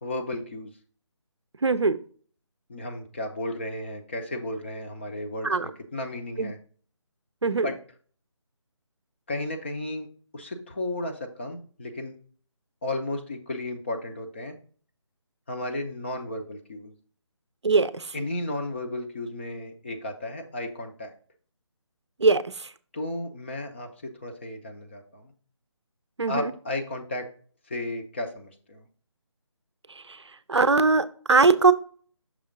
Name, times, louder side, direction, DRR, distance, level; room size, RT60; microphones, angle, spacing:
voice 1, 0.0-0.7 2.7-5.6 5.9-6.6 7.5-7.8 9.3-10.1 10.3-12.2 12.8-14.6 15.5-16.9 18.1-21.1 22.9-25.3 26.3-27.3 27.7-28.8, left 1 dB, 25° left, 4 dB, 0.6 m, -33 dB
voice 2, 1.6-2.0 5.4-5.7 6.4-6.5 7.4-7.7 17.6-17.9 22.2-22.4 26.2-26.5 30.5-31.7, right 4 dB, 65° right, 13 dB, 0.5 m, -20 dB
6.1 x 3.5 x 5.1 m, 0.44 s
figure-of-eight pair, 155°, 16 cm